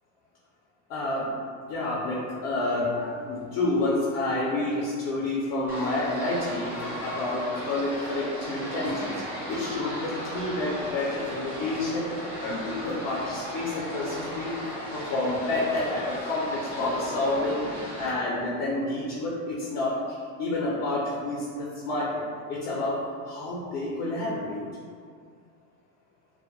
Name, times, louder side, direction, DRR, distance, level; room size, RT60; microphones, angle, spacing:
voice 1, 0.9-1.3 1.7-9.2 9.5-12.1 12.4-14.5 14.9-22.2 22.5-23.0 23.3-24.6, left 2 dB, 55° left, -6 dB, 0.5 m, -29 dB
sound 1, 5.7-18.1, equal, 5° right, 0.3 m, -36 dB
2.1 x 2.1 x 2.9 m, 2.1 s
cardioid pair, 150°, 38 cm